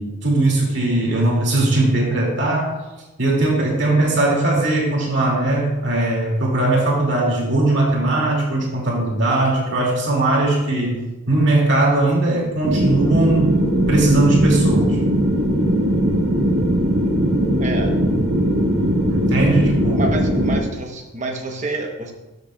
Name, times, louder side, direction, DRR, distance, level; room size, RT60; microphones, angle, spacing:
voice 1, 0.0-2.8 3.2-11.0 11.3-15.0 19.1-20.1, right 2 dB, 55° right, -3 dB, 2.3 m, -19 dB
sound 1, 12.6-20.6, equal, 75° right, 1.7 m, -19 dB
voice 2, 17.6-17.9 19.9-22.1, right 2 dB, 35° right, 3 dB, 0.9 m, -28 dB
12.0 x 6.6 x 2.3 m, 1.1 s
head